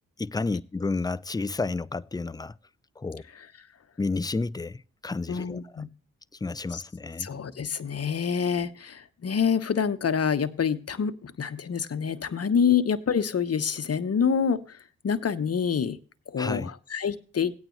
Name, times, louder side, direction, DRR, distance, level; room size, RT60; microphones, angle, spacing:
voice 1, 0.2-2.6 3.0-3.2 4.0-5.9 6.3-7.3 16.4-16.7, left 3 dB, 10° left, 0.4 m, -31 dB
voice 2, 5.3-5.9 6.7-6.8 7.2-14.8 15.0-16.0 16.3-17.5, left 7 dB, 40° left, 1.1 m, -27 dB
16.5 x 8.9 x 3.2 m
hypercardioid pair, 40°, 37 cm